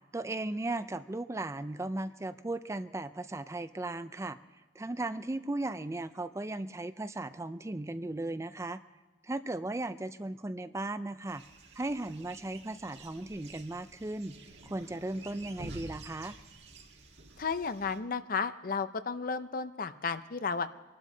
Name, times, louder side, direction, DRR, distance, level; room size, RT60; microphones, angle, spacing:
voice 1, 0.1-4.4 4.8-8.8 9.2-11.4 11.7-14.4 14.6-16.4, right 2 dB, 15° right, 12 dB, 0.4 m, -36 dB
sound 1, 11.3-18.0, right 2 dB, 65° right, 1.9 m, -50 dB
voice 2, 17.4-20.7, left 5 dB, 50° left, 12 dB, 0.6 m, -33 dB
24.5 x 12.5 x 3.9 m, 1.3 s
head